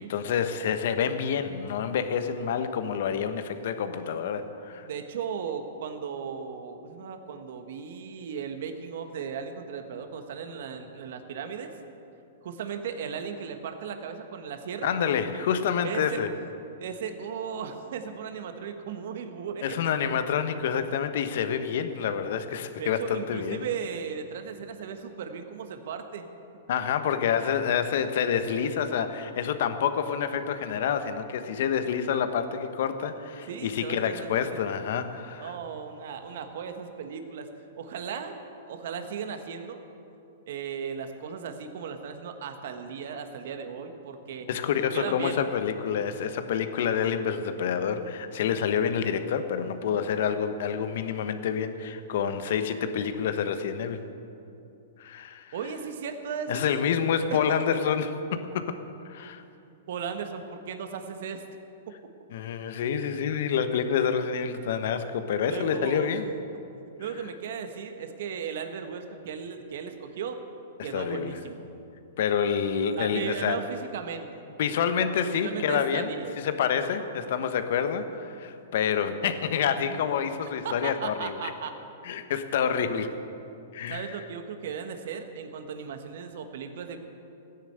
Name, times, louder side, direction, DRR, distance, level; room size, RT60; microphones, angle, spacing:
voice 1, 0.1-4.9 14.8-16.3 19.6-23.6 26.7-35.5 44.5-54.0 55.0-55.5 56.5-58.8 59.1-59.4 62.3-66.3 70.8-71.4 72.2-73.6 74.6-76.1 76.4-81.5 82.0-83.2 83.7-84.2, left 7 dB, 65° left, 9 dB, 1.1 m, -28 dB
voice 2, 4.8-11.7 12.4-14.9 15.8-16.2 16.8-19.8 22.8-26.3 33.5-34.3 34.7-34.8 35.4-37.5 37.8-38.4 38.7-39.8 40.5-44.5 44.9-45.4 55.5-56.8 57.3-57.6 59.9-61.4 65.5-66.2 67.0-70.4 70.8-71.6 73.0-74.4 75.4-76.4 79.9-80.0 80.6-81.7 83.9-87.0, right 7 dB, 65° right, 7 dB, 1.4 m, -36 dB
14.5 x 10.0 x 8.0 m, 2.8 s
hypercardioid pair, 130°, 0 cm